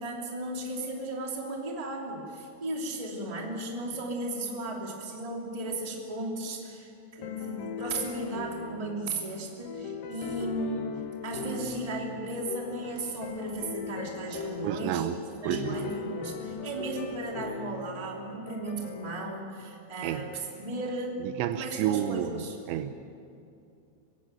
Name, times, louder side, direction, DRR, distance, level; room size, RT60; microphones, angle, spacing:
voice 1, 0.0-15.1 15.4-21.2 21.5-22.6, right 2 dB, 10° right, -1 dB, 2.0 m, -35 dB
sound 1, 7.2-19.2, left 6 dB, 65° left, 2.5 m, -39 dB
voice 2, 14.6-15.2 15.4-15.9 20.0-20.2 21.2-22.9, right 11 dB, 80° right, 10 dB, 2.9 m, -30 dB
25.0 x 16.0 x 9.1 m, 2.6 s
omnidirectional pair, 5.4 m